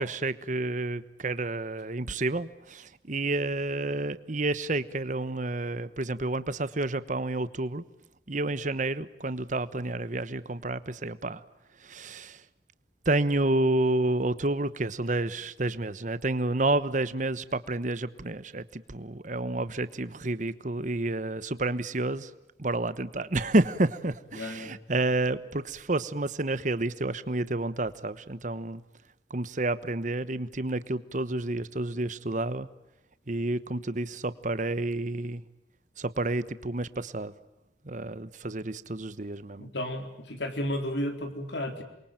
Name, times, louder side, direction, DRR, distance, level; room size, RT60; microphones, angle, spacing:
voice 1, 0.0-7.8 8.3-11.4 11.8-12.4 13.0-22.3 22.6-28.8 29.3-32.7 33.3-35.4 36.0-37.3 37.8-39.6, right 2 dB, 45° right, 14 dB, 1.1 m, -30 dB
voice 2, 24.4-24.7 39.6-41.8, left 1 dB, 75° left, 6 dB, 4.1 m, -33 dB
28.0 x 23.5 x 9.1 m, 0.87 s
head